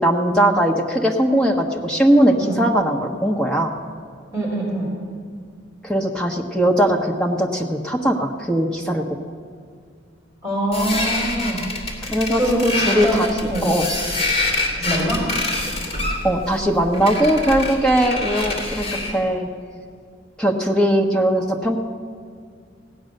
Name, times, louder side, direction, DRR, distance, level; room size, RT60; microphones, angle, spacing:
voice 1, 0.0-3.8 5.8-9.0 12.0-13.9 16.2-19.5 20.4-21.8, right 1 dB, 5° left, -1 dB, 1.1 m, -19 dB
voice 2, 4.3-4.9 10.4-11.6 12.4-13.7 14.7-15.2, right 1 dB, 15° right, -4 dB, 4.0 m, -23 dB
sound 1, 10.7-19.2, left 2 dB, 35° left, 2.9 m, -26 dB
16.5 x 9.6 x 6.6 m, 2.1 s
head